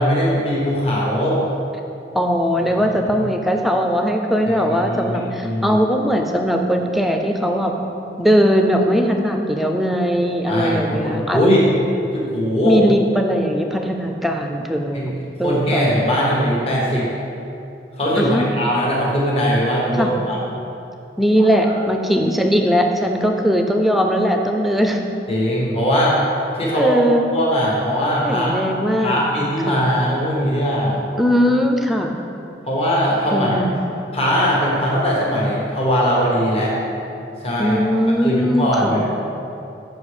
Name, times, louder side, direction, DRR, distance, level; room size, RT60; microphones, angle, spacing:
voice 1, 0.0-1.4 4.5-5.8 10.5-11.7 12.0-12.8 14.9-15.1 15.4-17.1 18.0-20.4 21.4-21.7 25.3-26.2 26.6-27.0 27.3-28.6 29.0-31.0 32.6-33.6 34.1-36.7 37.4-37.8 38.2-39.0, equal, 35° left, -5 dB, 1.2 m, -20 dB
voice 2, 2.1-7.9 8.2-11.4 12.6-15.1 15.4-15.8 18.2-18.5 20.0-20.2 21.2-25.0 26.7-27.2 28.2-29.2 29.7-29.8 31.2-32.1 33.3-33.8 37.6-39.0, equal, ahead, 3 dB, 0.5 m, -19 dB
7.1 x 5.5 x 4.9 m, 2.8 s
head